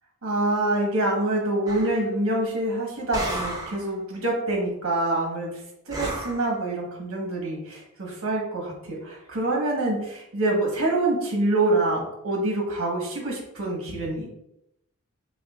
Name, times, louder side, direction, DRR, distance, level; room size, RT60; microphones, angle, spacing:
voice 1, 0.2-5.6 5.9-14.3, right 2 dB, 90° right, -1 dB, 1.2 m, -26 dB
sound 1, 1.7-2.0 3.1-3.9 5.9-6.5, right 1 dB, 15° right, 0.6 m, -32 dB
6.1 x 2.3 x 2.4 m, 0.82 s
head